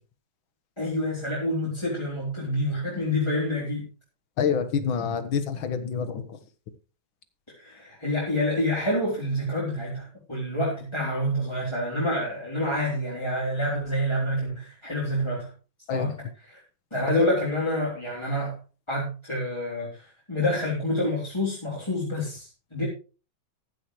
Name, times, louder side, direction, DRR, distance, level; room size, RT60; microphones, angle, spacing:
voice 1, 0.8-3.8 7.6-15.5 15.9-16.1 16.5-16.6 16.9-18.5 18.9-22.8, left 1 dB, 10° left, -5 dB, 3.5 m, -27 dB
voice 2, 4.4-6.2 15.9-16.1 17.1-17.3, left 7 dB, 70° left, 10 dB, 2.0 m, -27 dB
14.5 x 11.0 x 3.1 m, 0.35 s
omnidirectional pair, 2.3 m